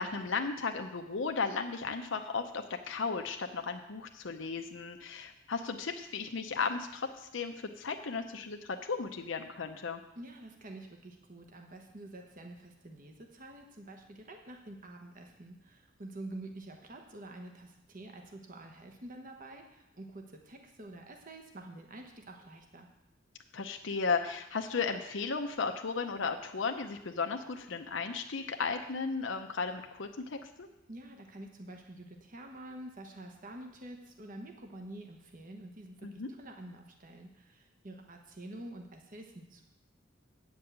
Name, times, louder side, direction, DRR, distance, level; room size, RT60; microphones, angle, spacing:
voice 1, 0.0-10.0 23.5-30.7 36.0-36.3, left 4 dB, 70° left, 5 dB, 0.7 m, -35 dB
voice 2, 10.1-22.9 30.9-39.6, right 1 dB, 45° right, 3 dB, 1.1 m, -48 dB
8.9 x 5.4 x 8.0 m, 0.93 s
head